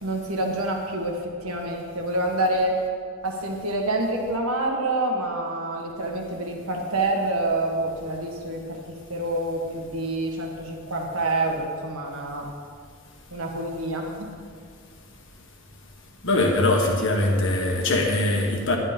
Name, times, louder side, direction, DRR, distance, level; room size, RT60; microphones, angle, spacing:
voice 1, 0.0-2.8 3.2-12.5 13.3-14.4, right 2 dB, 80° right, 1 dB, 1.7 m, -27 dB
voice 2, 16.2-18.8, left 2 dB, 60° left, 1 dB, 1.6 m, -22 dB
10.5 x 10.5 x 5.3 m, 2.1 s
head